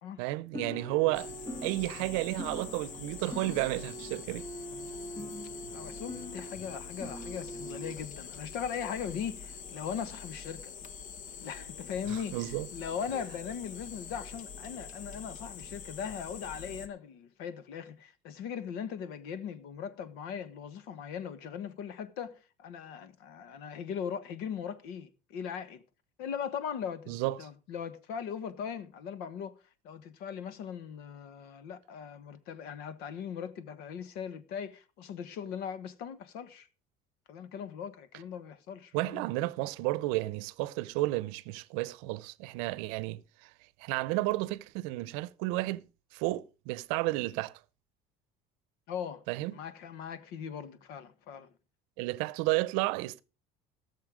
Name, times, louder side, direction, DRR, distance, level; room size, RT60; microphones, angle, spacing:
voice 1, 0.2-1.3 1.6-4.5 12.1-12.7 27.1-27.4 38.9-43.5 43.8-45.8 46.1-47.5 49.3-49.5 52.0-53.2, right 19 dB, 85° right, 0.7 m, -32 dB
sound 1, 0.5-7.9, equal, 20° left, 2.8 m, -43 dB
sound 2, 1.1-16.9, left 6 dB, 50° left, 1.5 m, -45 dB
voice 2, 5.7-10.7 11.4-25.8 26.2-29.6 29.8-36.7 37.3-39.2 48.9-49.2 49.5-51.5, left 7 dB, 70° left, 1.4 m, -39 dB
17.5 x 6.8 x 4.9 m
cardioid pair, 140°, 17 cm